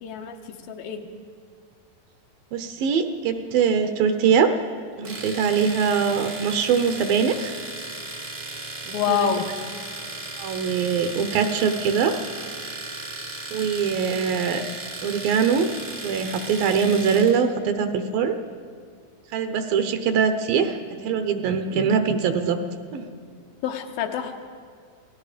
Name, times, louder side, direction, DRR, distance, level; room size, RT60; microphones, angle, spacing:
voice 1, 0.0-1.1 8.9-9.5 23.6-24.4, left 8 dB, 75° left, 5 dB, 2.7 m, -27 dB
voice 2, 2.5-4.5 5.0-7.5 8.9-9.3 10.4-12.2 13.5-14.6 15.0-15.7 16.0-18.4 19.3-20.8 21.0-22.6 22.9-23.1, right 6 dB, 75° right, 8 dB, 2.5 m, -22 dB
Domestic sounds home sounds, 5.0-17.4, right 2 dB, 45° right, 0.8 m, -36 dB
28.5 x 18.5 x 5.0 m, 2.1 s
omnidirectional pair, 4.4 m